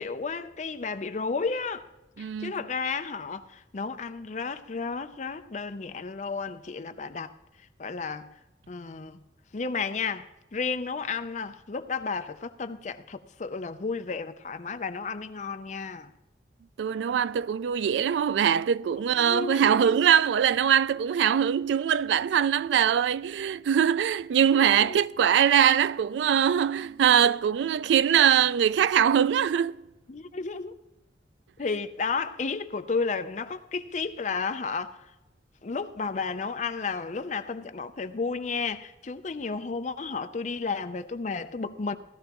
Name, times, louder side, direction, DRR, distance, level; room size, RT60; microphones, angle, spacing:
voice 1, 0.0-1.9 2.2-7.3 7.8-8.3 8.7-9.2 9.5-16.1 19.0-20.0 24.5-25.0 30.1-30.8 31.6-35.0 35.6-42.0, left 4 dB, 40° left, 0.5 m, -32 dB
voice 2, 2.2-2.6 16.8-29.8, right 8 dB, 85° right, 0.3 m, -22 dB
17.0 x 12.5 x 3.0 m
head